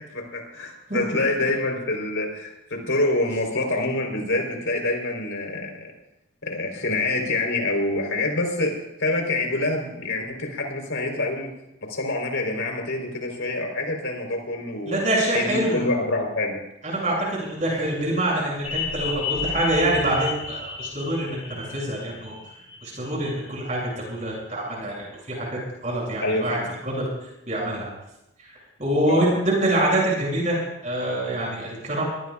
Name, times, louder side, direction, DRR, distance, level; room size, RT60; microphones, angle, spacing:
voice 1, 0.0-5.9 6.4-8.7 9.0-11.5 11.8-15.0 15.3-16.6 26.2-26.7 29.0-29.3, left 2 dB, 90° left, 2 dB, 4.1 m, -26 dB
voice 2, 14.9-15.8 16.8-21.4 21.7-22.3 22.8-26.6 26.8-27.0 27.5-27.9 28.8-32.1, right 1 dB, 40° right, -3 dB, 7.2 m, -25 dB
sound 1, 18.6-23.9 24.3-24.4, left 5 dB, 35° left, 4.4 m, -33 dB
23.5 x 18.0 x 2.5 m, 0.86 s
head